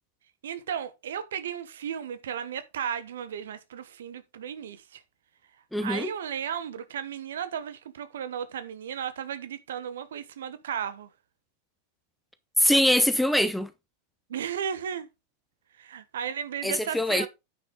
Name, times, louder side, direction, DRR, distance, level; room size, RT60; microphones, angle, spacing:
voice 1, 0.4-5.0 5.8-11.1 14.3-15.1 15.8-17.3, right 8 dB, 60° right, 1.1 m, -34 dB
voice 2, 5.7-6.1 12.6-13.7 16.6-17.3, left 1 dB, ahead, 0.8 m, -23 dB
9.5 x 5.9 x 3.9 m
figure-of-eight pair, 90°, 0 cm